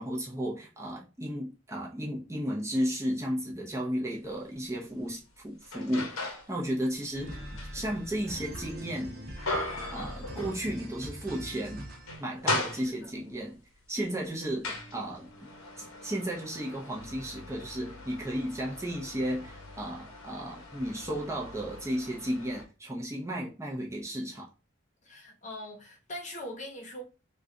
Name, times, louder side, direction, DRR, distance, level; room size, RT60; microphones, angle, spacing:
voice 1, 0.0-7.4 7.7-9.2 9.9-11.9 12.2-13.6 13.9-15.3 15.8-24.5, equal, 15° right, 0.7 m, -34 dB
sound 1, 4.3-4.4 5.0-6.5 6.9-11.0 11.4-11.5 11.9-13.3 14.0-22.6, left 2 dB, 90° left, 1.0 m, -39 dB
sound 2, 7.1-12.2, equal, 45° right, 1.0 m, -42 dB
voice 2, 12.4-13.1 25.0-27.0, left 1 dB, 35° left, 0.9 m, -42 dB
3.2 x 2.4 x 3.7 m
head